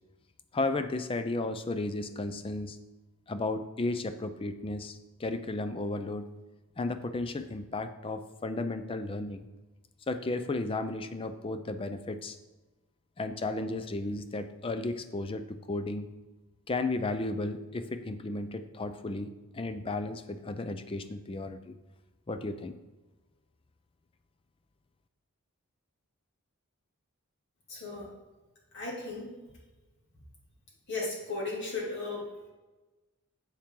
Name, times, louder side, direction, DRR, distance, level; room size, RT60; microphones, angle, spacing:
voice 1, 0.5-2.8 3.3-6.3 6.8-9.4 10.1-12.4 13.2-16.1 16.7-21.8 22.3-22.7, left 2 dB, 25° left, 10 dB, 0.4 m, -34 dB
voice 2, 27.7-28.1 28.7-29.3 30.9-32.5, left 3 dB, 55° left, -5 dB, 2.4 m, -36 dB
7.2 x 7.2 x 3.8 m, 1.2 s
head